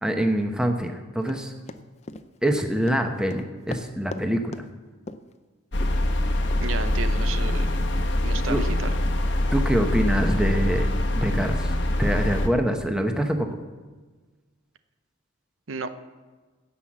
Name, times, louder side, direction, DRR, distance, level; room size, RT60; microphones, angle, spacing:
voice 1, 0.0-1.5 2.4-4.6 8.5-8.7 9.5-10.9 11.1-11.7 12.0-13.5, equal, 5° right, 4 dB, 0.9 m, -25 dB
Run, 1.3-4.2 4.5-4.7 5.1-5.3 5.8-5.9 6.5-6.6, left 2 dB, 35° left, 0.5 m, -38 dB
sound 1, 5.7-12.5, left 1 dB, 60° left, 1.1 m, -24 dB
voice 2, 6.6-7.8 8.2-8.9 15.7-15.9, right 4 dB, 80° right, 10 dB, 0.8 m, -33 dB
16.5 x 5.7 x 7.4 m, 1.3 s
head